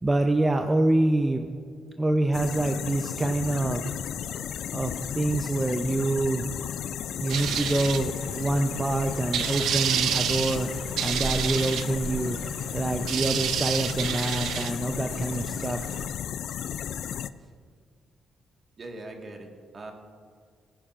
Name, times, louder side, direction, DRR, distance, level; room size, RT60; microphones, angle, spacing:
voice 1, 0.0-1.5 2.0-3.9 4.7-6.5 7.2-15.8, right 2 dB, 15° right, 5 dB, 0.6 m, -26 dB
sound 1, 2.3-17.3, left 9 dB, 70° left, 0.3 m, -34 dB
sound 2, 7.3-16.0, right 9 dB, 75° right, 0.5 m, -31 dB
voice 2, 18.8-19.9, right 2 dB, 40° right, 2 dB, 1.6 m, -41 dB
17.5 x 10.5 x 2.5 m, 2.2 s
cardioid pair, 90°, 0 cm